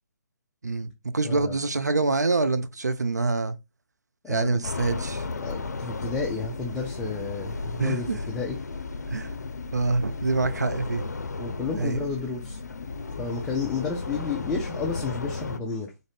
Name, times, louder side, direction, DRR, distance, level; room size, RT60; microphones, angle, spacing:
voice 1, 0.6-3.6 4.3-5.3 7.8-8.2 9.1-9.3 9.7-11.0 11.8-12.0, right 3 dB, 80° right, 0.6 m, -26 dB
voice 2, 1.2-1.6 4.2-4.5 5.4-8.6 11.4-12.6 13.2-15.9, left 4 dB, 5° left, 0.4 m, -31 dB
sound 1, 4.6-15.6, left 3 dB, 75° left, 0.5 m, -34 dB
3.9 x 2.6 x 3.2 m
figure-of-eight pair, 145°, 9 cm